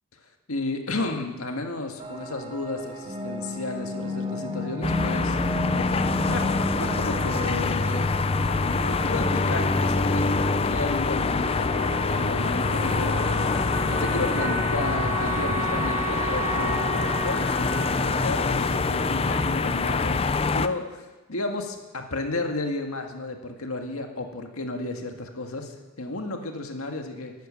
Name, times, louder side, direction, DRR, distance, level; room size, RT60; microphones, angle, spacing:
voice 1, 0.5-5.4 6.3-8.1 8.6-10.3 10.6-27.3, left 2 dB, 80° left, 4 dB, 1.8 m, -33 dB
sound 1, 2.0-19.9, equal, 25° right, 1.2 m, -37 dB
sound 2, 4.8-20.7, left 4 dB, 25° left, 0.4 m, -25 dB
Wind instrument woodwind instrument, 11.0-19.7, right 3 dB, 60° right, 3.9 m, -34 dB
11.5 x 11.0 x 8.7 m, 1.1 s
head